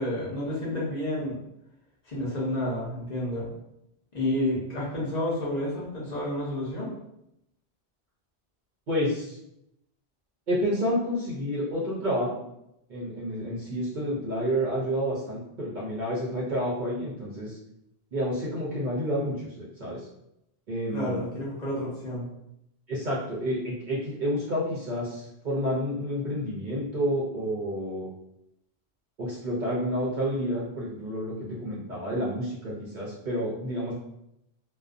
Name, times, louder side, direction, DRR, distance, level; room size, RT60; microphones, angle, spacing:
voice 1, 0.0-1.4 2.1-3.5 4.1-6.9 20.9-22.3, left 1 dB, 45° left, -7 dB, 0.8 m, -30 dB
voice 2, 8.9-9.4 10.5-12.4 12.9-17.6 18.1-20.1 20.7-21.2 22.9-28.1 29.2-33.9, equal, 55° right, -5 dB, 0.6 m, -29 dB
2.5 x 2.1 x 2.4 m, 0.81 s
omnidirectional pair, 1.2 m